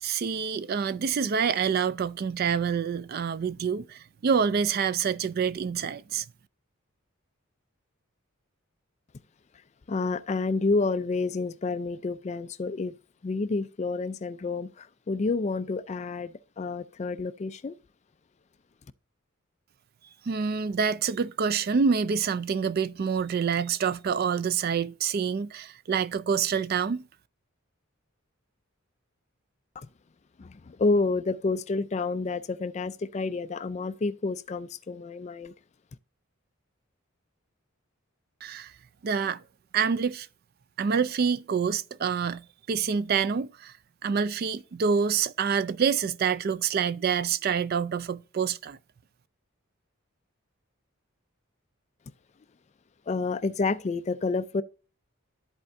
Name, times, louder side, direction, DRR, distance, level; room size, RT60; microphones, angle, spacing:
voice 1, 0.0-6.2 20.3-27.1 38.4-38.7 39.0-39.4 39.7-40.3 40.8-43.7 44.0-48.8, right 6 dB, 45° right, 0.3 m, -27 dB
voice 2, 9.9-12.9 13.2-17.7 29.8-29.9 30.4-35.5 53.1-54.6, left 3 dB, 30° left, 0.3 m, -29 dB
13.0 x 4.4 x 2.6 m
head